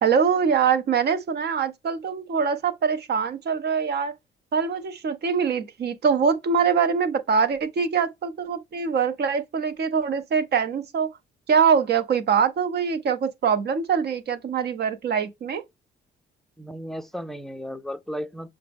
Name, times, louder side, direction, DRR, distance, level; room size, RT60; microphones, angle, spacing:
voice 1, 0.0-4.1 4.5-11.1 11.5-15.6, right 6 dB, 55° right, 0.6 m, -23 dB
voice 2, 16.6-18.5, equal, ahead, 0.4 m, -34 dB
5.8 x 2.1 x 3.4 m
cardioid pair, 90°, 20 cm